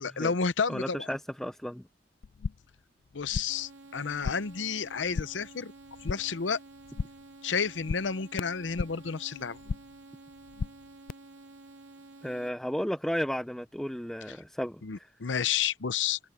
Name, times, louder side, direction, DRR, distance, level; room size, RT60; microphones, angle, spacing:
voice 1, 0.0-1.1 3.1-5.7 6.0-6.6 7.4-9.6 14.8-16.2, left 6 dB, 80° left, 0.7 m, -31 dB
voice 2, 0.7-1.8 12.2-15.1, equal, ahead, 0.6 m, -33 dB
sound 1, 2.2-2.8 3.1-3.7 4.0-4.6 4.9-5.5 5.8-6.4 6.7-7.3 7.6-9.1 9.4-10.0 10.3-11.1, left 5 dB, 50° left, 0.3 m, -37 dB
sound 2, 3.5-12.5, right 2 dB, 80° right, 2.4 m, -51 dB
head